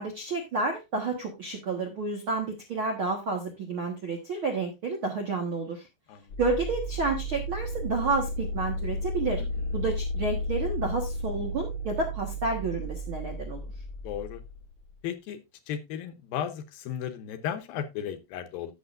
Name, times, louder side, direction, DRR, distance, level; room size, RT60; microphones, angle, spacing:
voice 1, 0.0-5.9 6.4-9.4 9.7-13.6, right 3 dB, 85° right, 2 dB, 1.1 m, -30 dB
sound 1, 6.3-15.0, equal, 55° left, 1.4 m, -33 dB
voice 2, 14.0-14.4 15.0-15.4 15.7-18.7, left 9 dB, 75° left, 9 dB, 2.4 m, -34 dB
15.0 x 6.5 x 2.5 m, 0.22 s
omnidirectional pair, 4.7 m